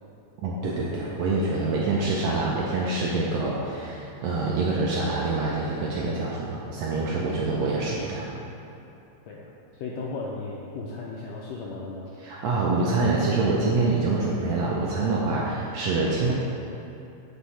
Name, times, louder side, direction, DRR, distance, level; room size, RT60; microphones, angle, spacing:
voice 1, 0.4-8.3 12.2-16.3, right 3 dB, 80° right, -4 dB, 1.5 m, -26 dB
voice 2, 9.3-12.1, left 3 dB, 85° left, -3 dB, 1.5 m, -36 dB
8.2 x 4.4 x 4.1 m, 2.8 s
omnidirectional pair, 3.5 m